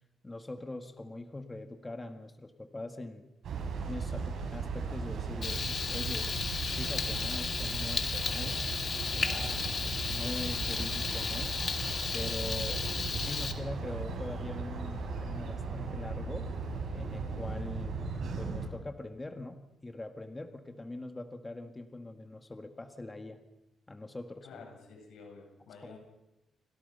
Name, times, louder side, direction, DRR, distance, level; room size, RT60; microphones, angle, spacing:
voice 1, 0.2-3.3 3.8-8.6 9.1-9.3 10.1-11.5 12.1-12.8 13.1-16.5 16.9-18.0 18.4-23.4 23.9-24.6 25.8-25.9, left 2 dB, 15° left, 7 dB, 1.8 m, -42 dB
sound 1, 3.4-18.7, right 4 dB, 70° right, 7.5 m, -37 dB
Frying (food), 5.4-13.5, left 5 dB, 40° left, 2.4 m, -34 dB
voice 2, 9.2-9.6 24.4-26.0, left 5 dB, 90° left, 2 dB, 7.9 m, -50 dB
29.5 x 25.0 x 5.5 m, 0.92 s
cardioid pair, 130°, 0 cm